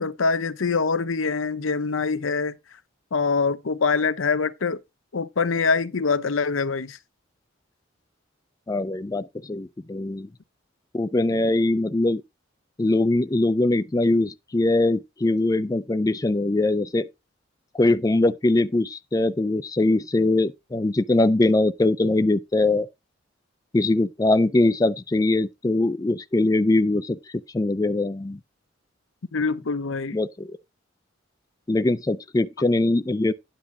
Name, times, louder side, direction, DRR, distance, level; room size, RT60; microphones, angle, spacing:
voice 1, 0.0-2.5 3.1-4.8 5.1-7.0 29.3-30.2, left 4 dB, 80° left, 0.7 m, -24 dB
voice 2, 8.7-10.3 10.9-12.2 12.8-17.1 17.7-22.9 23.7-27.2 27.5-28.4 30.1-30.5 31.7-33.3, left 2 dB, 20° left, 0.4 m, -22 dB
10.0 x 3.6 x 7.1 m
head